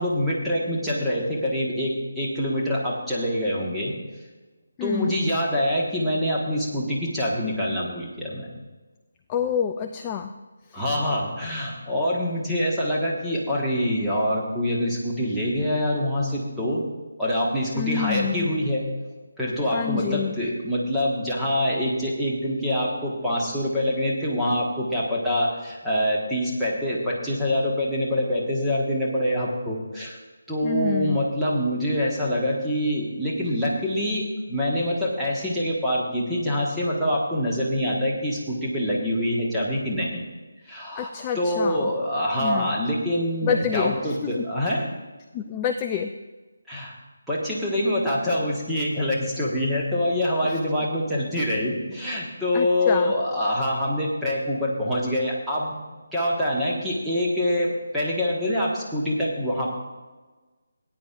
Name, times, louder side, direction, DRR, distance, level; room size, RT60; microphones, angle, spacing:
voice 1, 0.0-3.9 4.8-8.5 10.7-16.8 17.2-18.8 19.4-30.2 30.5-40.2 40.7-41.1 41.3-44.9 46.7-46.9 47.3-55.7 56.1-59.7, equal, ahead, -8 dB, 1.5 m, -25 dB
voice 2, 4.8-5.1 9.3-10.3 10.7-10.8 17.7-18.5 19.7-20.4 30.6-31.2 40.9-41.9 42.4-42.8 43.4-44.5 45.3-46.1 50.4-50.6 52.5-53.1, left 8 dB, 20° left, 6 dB, 0.3 m, -28 dB
18.0 x 9.7 x 2.5 m, 1.3 s
figure-of-eight pair, 150°, 0 cm